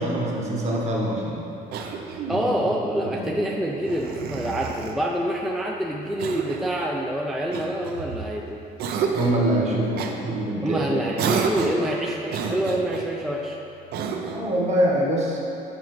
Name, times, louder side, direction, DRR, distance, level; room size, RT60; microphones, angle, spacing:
voice 1, 0.0-1.5 2.3-2.5 2.9-3.3 9.1-11.2 14.3-15.4, right 1 dB, 40° right, -3 dB, 1.1 m, -25 dB
Cough, 1.7-2.5 3.8-5.0 6.2-6.7 7.5-8.3 8.8-9.4 10.0-10.2 11.2-11.9 12.3-13.1 13.9-14.5, right 5 dB, 70° right, 0.5 m, -29 dB
voice 2, 2.3-8.6 10.6-13.6, equal, ahead, -2 dB, 0.3 m, -26 dB
7.1 x 4.7 x 3.0 m, 2.9 s
cardioid pair, 110°, 17 cm